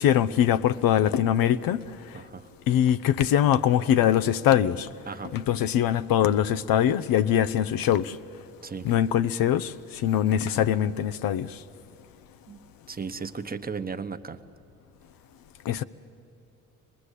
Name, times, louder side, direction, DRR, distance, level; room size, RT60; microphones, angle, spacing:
voice 1, 0.0-1.8 2.7-4.9 5.3-8.2 8.8-11.5 15.7-15.8, left 10 dB, 65° left, 0.7 m, -22 dB
voice 2, 2.1-2.5 5.1-5.3 8.6-8.9 12.5-12.6 12.9-14.4, right 5 dB, 25° right, 1.0 m, -35 dB
25.0 x 19.5 x 8.3 m
supercardioid pair, 70°, 37 cm